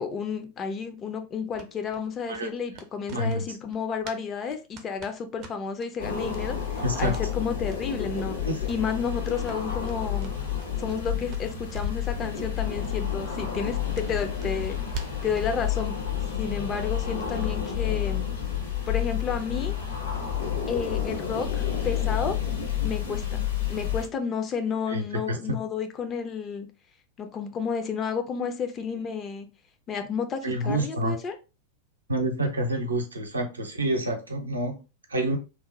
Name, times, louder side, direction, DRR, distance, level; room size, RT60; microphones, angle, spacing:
voice 1, 0.0-8.4 8.7-10.3 10.8-14.8 15.2-15.9 16.4-18.2 18.9-19.7 20.7-22.4 22.8-23.4 23.7-26.7 27.2-29.5 29.9-31.3, left 6 dB, 25° left, 0.4 m, -31 dB
sound 1, 1.5-4.2 4.5-5.9 6.3-6.4 6.7-7.3 7.7-7.8 8.1-8.3 8.5-8.7 9.0-11.0 11.3-12.1 12.3-12.5 12.8-12.9 13.4-15.5, right 3 dB, 40° right, 0.5 m, -43 dB
voice 2, 3.1-3.4 6.8-7.1 8.4-8.6 24.9-25.6 30.4-31.2 32.1-34.8 35.1-35.4, right 1 dB, 80° right, 0.6 m, -28 dB
sound 2, 6.0-24.1, left 9 dB, 65° left, 0.9 m, -30 dB
2.9 x 2.0 x 2.6 m
figure-of-eight pair, 90°, 0 cm